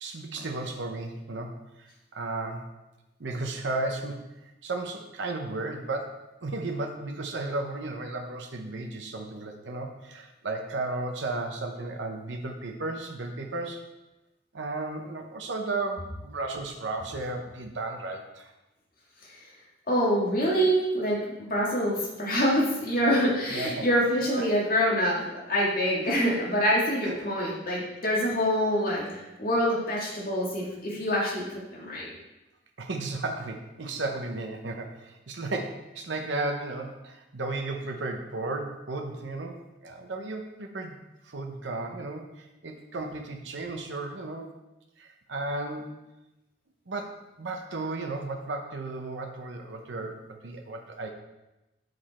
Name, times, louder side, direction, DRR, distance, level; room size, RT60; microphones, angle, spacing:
voice 1, 0.0-2.7 3.2-13.8 14.5-18.5 23.5-23.9 24.4-24.5 26.0-26.1 27.0-27.2 29.9-30.0 32.8-41.0 41.2-44.5 45.0-46.0 46.9-51.1, right 2 dB, 90° right, 3 dB, 0.8 m, -34 dB
voice 2, 19.9-32.1, equal, 50° left, -5 dB, 2.3 m, -26 dB
7.8 x 5.2 x 4.3 m, 0.98 s
head